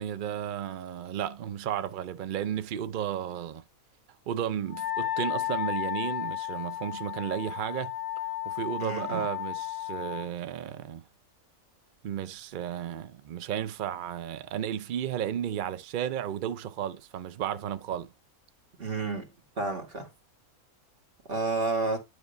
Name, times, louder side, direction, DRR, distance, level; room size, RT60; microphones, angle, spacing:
voice 1, 0.0-3.6 4.3-7.9 8.3-11.0 12.0-18.1, right 10 dB, 90° right, 0.4 m, -33 dB
Wind instrument woodwind instrument, 4.7-10.3, left 13 dB, 60° left, 1.0 m, -33 dB
voice 2, 8.8-9.3 18.8-19.3 19.6-20.1 21.3-22.0, right 3 dB, 40° right, 1.8 m, -30 dB
9.5 x 3.3 x 4.9 m
omnidirectional pair, 1.5 m